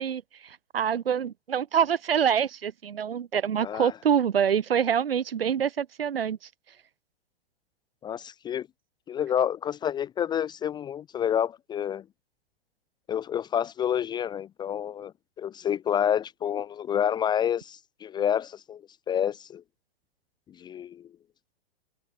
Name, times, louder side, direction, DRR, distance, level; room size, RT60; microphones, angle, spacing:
voice 1, 0.0-6.4, right 8 dB, 70° right, 2.5 m, -26 dB
voice 2, 3.6-3.9 8.0-8.7 9.1-12.0 13.1-15.1 15.4-18.8 19.1-19.6 20.6-21.0, left 9 dB, 15° left, 0.5 m, -28 dB
figure-of-eight pair, 110°, 30 cm